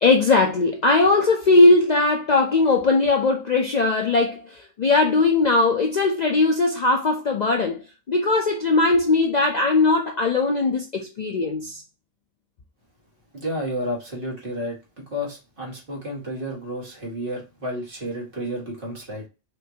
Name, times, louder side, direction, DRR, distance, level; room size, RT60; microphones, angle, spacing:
voice 1, 0.0-7.8 8.1-11.8, left 3 dB, 50° left, 0.5 m, -19 dB
voice 2, 13.3-19.3, equal, 50° right, 1.7 m, -31 dB
5.2 x 2.6 x 2.7 m
omnidirectional pair, 1.2 m